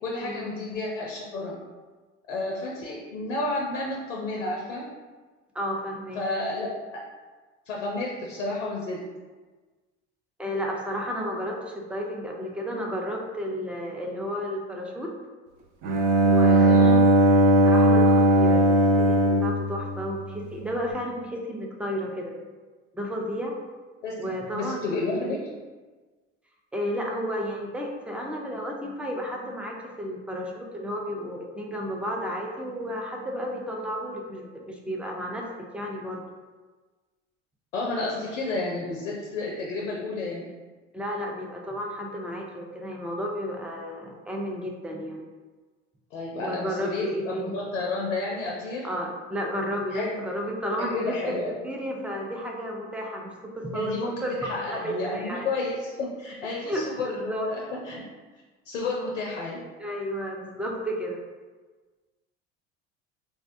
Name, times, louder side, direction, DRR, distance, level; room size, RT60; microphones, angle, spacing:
voice 1, 0.0-1.6 2.3-4.8 6.2-7.0 7.7-9.0 16.5-17.0 24.0-25.4 37.7-40.5 46.1-48.9 49.9-50.2 50.9-51.5 53.7-54.2 54.4-58.0 58.7-59.6, left 2 dB, 90° left, -2 dB, 0.5 m, -31 dB
voice 2, 5.5-6.2 10.4-15.2 16.2-17.1 17.6-22.5 22.9-23.6 24.2-24.8 26.7-35.5 35.7-36.2 40.9-45.2 46.4-47.5 48.8-51.3 51.6-54.3 54.7-55.5 56.6-57.5 59.8-61.2, equal, 5° right, -1 dB, 0.4 m, -32 dB
Bowed string instrument, 15.8-20.7, right 1 dB, 70° right, 0.6 m, -19 dB
3.5 x 2.1 x 2.5 m, 1.3 s
hypercardioid pair, 70°, 36 cm